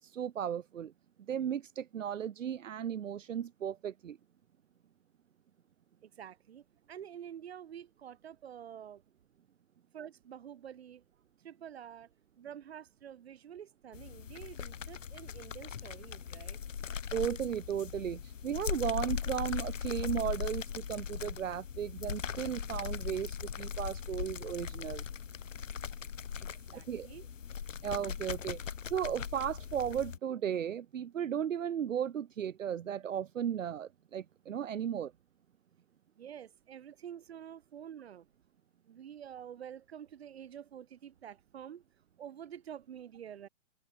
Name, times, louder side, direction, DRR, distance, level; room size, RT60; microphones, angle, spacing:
voice 1, 0.0-0.9 1.3-4.2 17.1-25.0 26.7-27.1 27.8-35.1, right 9 dB, 75° right, 1.0 m, -35 dB
voice 2, 6.0-9.0 9.9-11.0 11.4-12.1 12.4-16.6 26.4-27.3 36.2-38.3 38.9-41.8 42.2-43.5, right 9 dB, 50° right, 3.2 m, -48 dB
sound 1, 13.9-30.2, left 7 dB, 75° left, 2.3 m, -39 dB
open air
hypercardioid pair, 160°, 39 cm